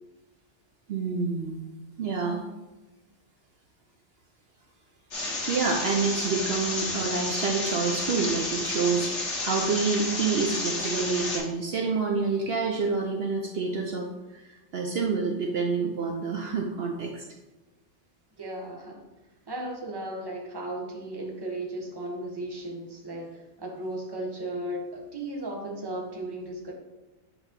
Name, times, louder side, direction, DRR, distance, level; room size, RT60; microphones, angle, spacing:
voice 1, 0.9-1.6 2.0-2.5 5.5-9.1 9.4-17.2, right 4 dB, 60° right, 1 dB, 0.9 m, -28 dB
sound 1, 5.1-11.4, left 2 dB, 70° left, 1.7 m, -31 dB
voice 2, 18.4-19.0 19.5-23.3 23.6-26.7, right 1 dB, 20° right, 0 dB, 1.0 m, -35 dB
8.1 x 3.0 x 5.2 m, 1.1 s
omnidirectional pair, 1.2 m